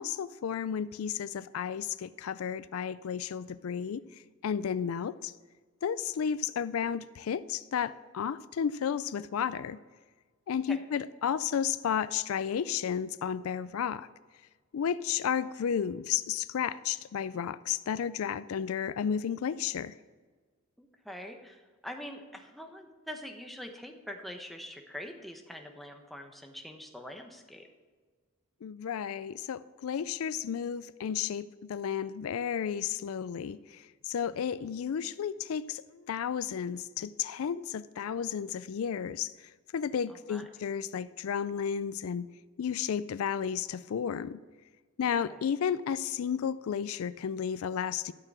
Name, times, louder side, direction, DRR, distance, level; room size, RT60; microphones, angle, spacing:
voice 1, 0.0-5.3 5.8-9.8 10.5-14.1 14.7-20.0 28.6-42.3 42.6-44.4 45.0-48.1, left 8 dB, 80° left, 16 dB, 0.4 m, -33 dB
voice 2, 20.8-27.7 40.1-40.5 45.3-45.4, equal, ahead, 3 dB, 1.0 m, -44 dB
12.0 x 6.6 x 6.3 m, 1.4 s
head